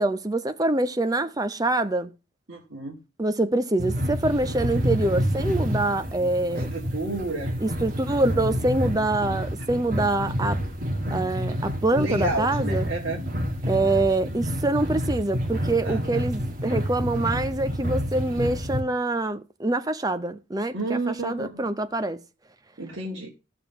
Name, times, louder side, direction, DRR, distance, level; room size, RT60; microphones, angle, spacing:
voice 1, 0.0-2.1 3.2-6.7 7.6-10.6 11.1-12.9 13.7-22.2, right 2 dB, 20° right, 0.6 m, -25 dB
voice 2, 2.5-3.0 6.5-7.5 11.9-13.2 15.8-16.2 20.7-21.7 22.8-23.3, right 2 dB, 55° right, 2.2 m, -31 dB
sound 1, 3.8-18.8, equal, 40° right, 1.9 m, -28 dB
14.0 x 6.9 x 2.9 m
head